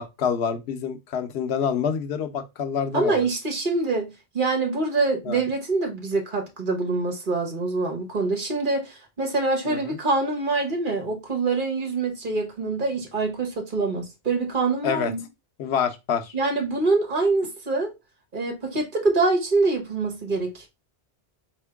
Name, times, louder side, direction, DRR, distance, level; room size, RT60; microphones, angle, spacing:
voice 1, 0.0-3.3 5.2-5.4 9.7-10.0 14.8-15.1 15.6-16.3, left 7 dB, 85° left, 1.0 m, -27 dB
voice 2, 2.9-15.2 16.3-17.9 18.3-20.7, right 3 dB, 50° right, 1.3 m, -25 dB
4.4 x 2.9 x 3.4 m
omnidirectional pair, 1.1 m